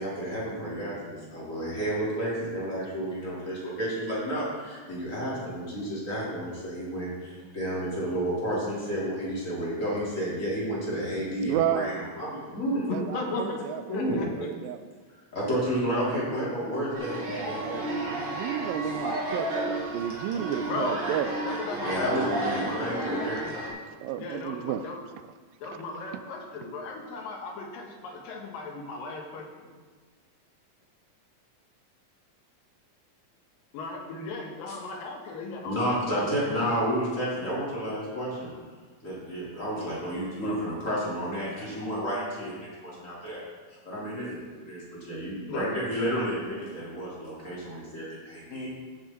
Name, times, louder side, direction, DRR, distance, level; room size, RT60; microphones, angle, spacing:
voice 1, 0.0-12.9 13.9-14.3 15.3-18.5 21.8-23.4 34.7-34.8 35.6-38.5 39.0-43.4 43.8-48.7, equal, 25° left, -7 dB, 3.0 m, -31 dB
voice 2, 11.4-12.1 12.9-14.0 14.2-14.9 17.6-21.4 23.3-24.9 25.6-25.8 26.1-26.2, right 10 dB, 85° right, 11 dB, 2.3 m, -33 dB
voice 3, 12.9-13.7 13.9-14.5 20.7-21.1 21.4-23.8 24.2-25.0 25.6-29.7 33.7-36.6 40.4-40.6 45.5-45.8 48.5-48.7, left 3 dB, 75° left, 1 dB, 3.0 m, -36 dB
sound 1, 16.9-23.7, right 1 dB, 40° right, 2.1 m, -32 dB
15.0 x 6.2 x 4.3 m, 1.5 s
omnidirectional pair, 4.0 m